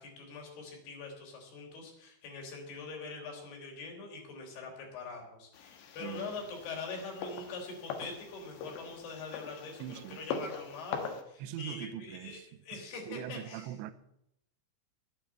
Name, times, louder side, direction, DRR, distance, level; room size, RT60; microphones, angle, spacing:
voice 1, 0.0-13.7, left 4 dB, 50° left, 5.2 m, -43 dB
sound 1, 5.5-11.2, left 6 dB, 70° left, 3.3 m, -42 dB
voice 2, 6.0-6.3 9.8-10.5 11.4-12.8 13.1-13.9, right 12 dB, 90° right, 2.6 m, -42 dB
11.0 x 9.6 x 8.4 m
omnidirectional pair, 6.0 m